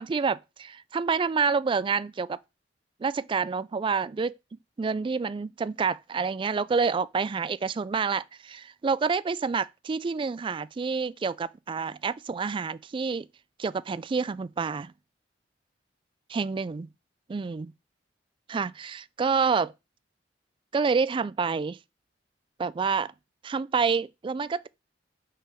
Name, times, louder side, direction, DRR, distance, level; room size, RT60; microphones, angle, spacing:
voice 1, 0.0-2.4 3.0-4.4 4.8-13.3 13.6-14.9 16.3-16.9 17.3-17.7 18.5-19.7 20.7-21.8 22.6-23.1 23.4-24.7, right 5 dB, 30° right, 0.3 m, -28 dB
5.9 x 4.7 x 4.9 m
head